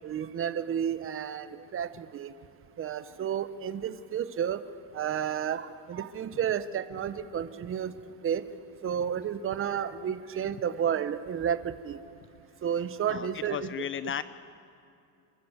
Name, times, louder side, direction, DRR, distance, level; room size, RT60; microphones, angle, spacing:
voice 1, 0.0-2.3 2.8-4.6 4.9-7.9 8.2-8.5 8.8-12.0 12.6-13.9, right 8 dB, 30° right, 13 dB, 0.9 m, -31 dB
voice 2, 13.1-14.2, left 9 dB, 30° left, 15 dB, 0.4 m, -35 dB
27.5 x 13.0 x 8.1 m, 2.6 s
supercardioid pair, 120°, 41 cm